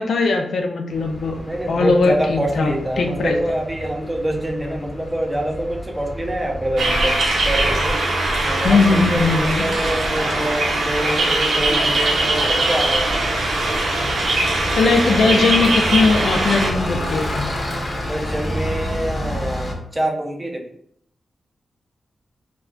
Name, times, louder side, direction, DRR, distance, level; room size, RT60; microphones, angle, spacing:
voice 1, 0.0-1.4 1.7-3.4 8.6-9.7 14.8-17.5, left 4 dB, 75° left, 3 dB, 0.4 m, -19 dB
Bus, 0.9-19.7, equal, 35° left, 0.6 m, -30 dB
voice 2, 1.5-8.0 8.4-13.1 15.2-15.3 18.1-19.7 19.9-20.7, right 1 dB, 15° right, 1 dB, 0.5 m, -25 dB
sound 1, 6.8-16.7, right 2 dB, 70° right, 0.6 m, -21 dB
2.4 x 2.2 x 3.6 m, 0.69 s
wide cardioid pair, 135°, 0 cm